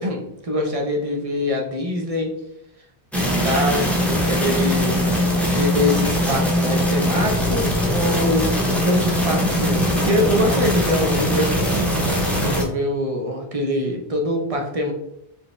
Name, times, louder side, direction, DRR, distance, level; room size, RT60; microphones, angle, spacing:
voice 1, 0.0-2.3 3.1-5.0 5.5-8.5 8.8-11.7 12.4-14.9, left 1 dB, 35° right, 2 dB, 0.8 m, -24 dB
sound 1, 3.1-12.6, equal, ahead, 0.8 m, -21 dB
4.8 x 3.4 x 3.2 m, 0.80 s
omnidirectional pair, 1.1 m